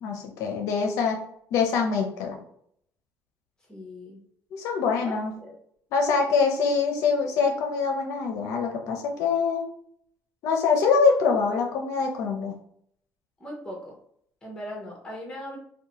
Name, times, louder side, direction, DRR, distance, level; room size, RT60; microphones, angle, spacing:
voice 1, 0.0-1.2 1.5-2.4 4.5-5.4 5.9-9.7 10.4-12.5, left 5 dB, 75° left, 2 dB, 0.5 m, -24 dB
voice 2, 3.7-4.2 5.0-5.6 13.4-13.9 14.4-15.6, left 1 dB, 15° left, -2 dB, 0.9 m, -38 dB
2.6 x 2.1 x 2.8 m, 0.67 s
cardioid pair, 135°, 5 cm